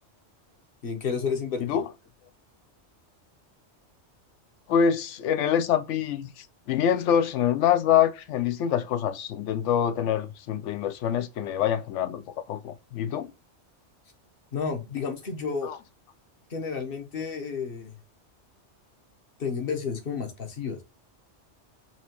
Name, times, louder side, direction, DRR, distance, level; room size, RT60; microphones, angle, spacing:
voice 1, 0.8-1.6 14.5-15.7 16.5-18.0 19.4-20.8, left 5 dB, 55° left, 1.1 m, -31 dB
voice 2, 4.7-12.2 12.5-13.3 15.6-15.8, left 9 dB, 85° left, 0.9 m, -25 dB
4.3 x 2.9 x 2.9 m
omnidirectional pair, 1.2 m